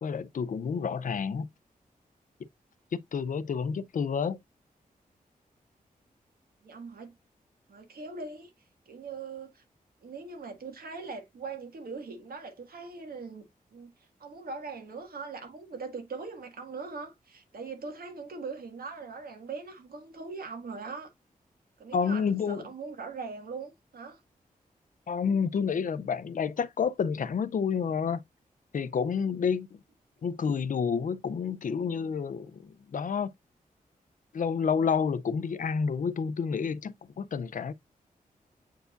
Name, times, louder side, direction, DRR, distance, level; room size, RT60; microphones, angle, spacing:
voice 1, 0.0-1.5 2.9-4.4 21.9-22.6 25.1-28.2 28.7-29.8 30.2-33.3 34.3-37.7, left 6 dB, 60° left, 0.5 m, -29 dB
voice 2, 6.6-7.2 7.7-8.5 8.9-9.6 10.0-13.5 13.7-13.9 14.2-21.1 21.8-24.2, right 4 dB, 90° right, 1.9 m, -41 dB
8.0 x 4.7 x 2.5 m
wide cardioid pair, 140°, 15 cm